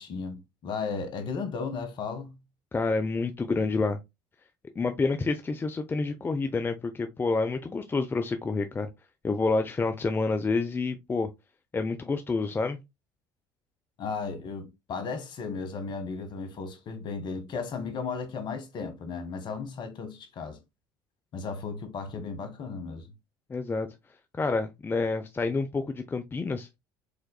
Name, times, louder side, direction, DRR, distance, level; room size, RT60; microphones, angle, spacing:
voice 1, 0.0-2.3 14.0-20.6 21.3-23.1, left 5 dB, 50° left, 1.5 m, -35 dB
voice 2, 2.7-4.0 4.8-8.9 9.2-11.3 11.7-12.8 23.5-23.9 24.3-26.8, left 3 dB, 20° left, 0.6 m, -28 dB
5.0 x 3.9 x 2.2 m
hypercardioid pair, 75°, 10 cm